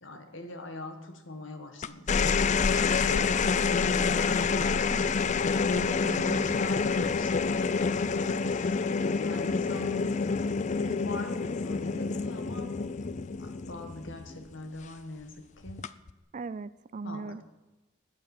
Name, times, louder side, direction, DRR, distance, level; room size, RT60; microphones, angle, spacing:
voice 1, 0.0-5.3 6.1-10.2 10.6-12.7 13.4-15.8 17.0-17.4, left 2 dB, 65° left, 7 dB, 1.6 m, -42 dB
sound 1, 1.8-14.4 15.7-16.1, left 5 dB, 35° left, 0.4 m, -27 dB
sound 2, 2.2-7.8, equal, 5° left, 1.2 m, -54 dB
voice 2, 5.7-6.6 16.3-17.4, right 4 dB, 40° right, 17 dB, 0.4 m, -39 dB
Bass guitar, 9.9-16.2, left 1 dB, 80° left, 3.4 m, -58 dB
13.5 x 9.0 x 7.2 m, 1.0 s
head